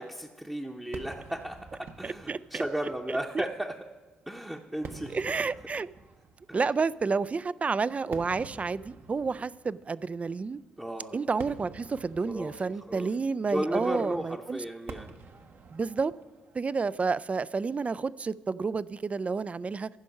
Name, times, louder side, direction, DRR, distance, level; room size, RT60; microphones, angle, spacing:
voice 1, 0.0-3.8 4.3-5.2 6.5-6.6 10.8-11.2 12.2-13.1 13.5-15.1, right 1 dB, 5° right, 0.8 m, -35 dB
Fireworks, 0.9-18.3, right 4 dB, 45° right, 0.9 m, -50 dB
voice 2, 2.0-2.6 3.3-3.4 5.1-5.9 6.5-10.6 11.1-14.6 15.7-16.1 16.5-19.9, right 4 dB, 30° right, 0.3 m, -30 dB
15.0 x 5.3 x 5.5 m
figure-of-eight pair, 40°, 5 cm